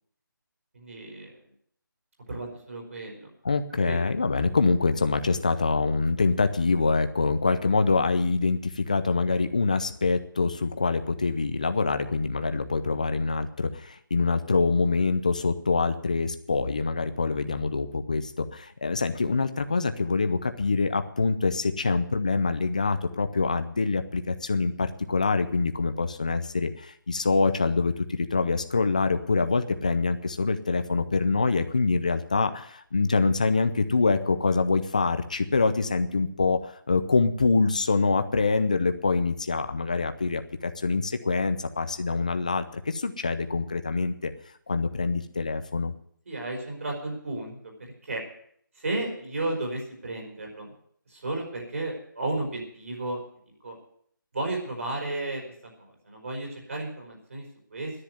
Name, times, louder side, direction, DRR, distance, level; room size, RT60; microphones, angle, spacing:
voice 1, 0.7-1.3 2.3-3.3 3.7-4.0 46.2-47.7 48.0-48.2 48.8-50.7 51.1-53.2 53.6-53.8 54.3-55.4 55.8-57.4 57.7-57.9, right 2 dB, 40° right, 0 dB, 4.9 m, -33 dB
voice 2, 3.4-44.3 44.7-45.9, left 4 dB, 20° left, 10 dB, 0.5 m, -25 dB
10.5 x 9.9 x 9.4 m, 0.64 s
figure-of-eight pair, 175°, 11 cm